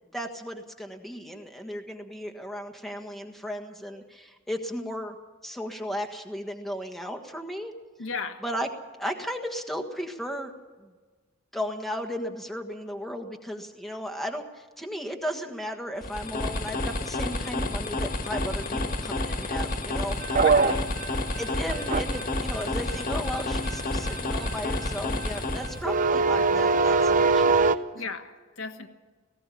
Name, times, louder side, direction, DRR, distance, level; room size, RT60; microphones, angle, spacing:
voice 1, 0.1-5.2 5.4-7.7 8.4-8.7 9.0-10.5 10.8-10.9 11.5-20.4 21.4-27.8, equal, ahead, 4 dB, 1.5 m, -35 dB
voice 2, 8.0-8.4 20.4-20.9 27.9-28.9, left 4 dB, 75° left, 6 dB, 1.4 m, -35 dB
sound 1, 16.0-25.9, left 2 dB, 45° left, 1.8 m, -30 dB
sound 2, 20.2-27.8, right 4 dB, 40° right, 0.6 m, -24 dB
19.0 x 16.5 x 8.5 m, 1.4 s
head